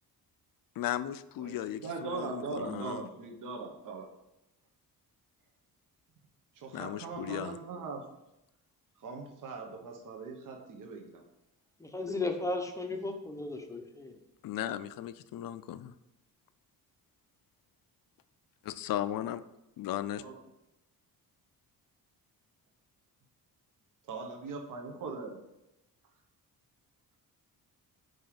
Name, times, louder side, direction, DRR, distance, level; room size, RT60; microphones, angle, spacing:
voice 1, 0.8-3.0 6.7-7.6 14.4-15.9 18.6-19.4 19.8-20.2, left 12 dB, 65° left, 13 dB, 0.5 m, -36 dB
voice 2, 1.4-4.1 6.5-8.0 9.0-11.2 20.1-20.4 24.1-25.4, right 4 dB, 55° right, 2 dB, 1.1 m, -40 dB
voice 3, 11.8-14.1, left 2 dB, 10° left, 4 dB, 0.7 m, -35 dB
5.4 x 4.9 x 5.8 m, 0.90 s
cardioid pair, 155°, 37 cm